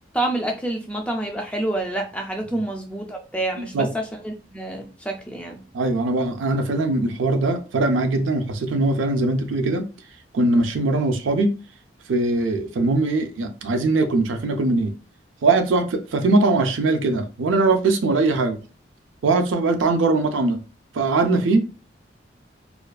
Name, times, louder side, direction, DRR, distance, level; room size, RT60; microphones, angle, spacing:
voice 1, 0.1-5.6, right 1 dB, 5° left, 0.3 m, -28 dB
voice 2, 5.7-9.9 10.3-11.5 12.1-14.9 15.4-18.6 19.2-20.6 20.9-21.6, right 2 dB, 90° right, 0.4 m, -21 dB
2.4 x 2.3 x 2.2 m
head